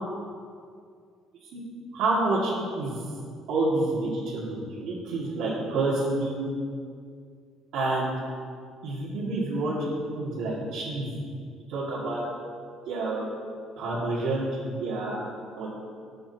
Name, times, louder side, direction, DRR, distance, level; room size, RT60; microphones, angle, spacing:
voice 1, 1.9-2.9 3.5-6.5 7.7-8.1 8.8-9.9 10.2-11.2 11.7-12.2 12.9-13.3 13.8-15.2 15.6-15.7, right 2 dB, 65° right, -8 dB, 2.1 m, -28 dB
15.5 x 7.7 x 2.8 m, 2.2 s
cardioid pair, 165°, 0 cm